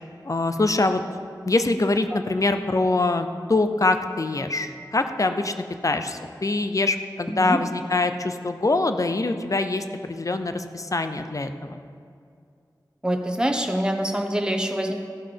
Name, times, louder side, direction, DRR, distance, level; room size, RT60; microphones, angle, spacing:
voice 1, 0.2-1.0 1.5-5.5 5.8-11.8, left 2 dB, 45° left, 8 dB, 0.6 m, -24 dB
voice 2, 13.0-14.9, right 1 dB, 10° right, 3 dB, 1.0 m, -25 dB
14.5 x 5.6 x 5.2 m, 2.4 s
wide cardioid pair, 60°, 8 cm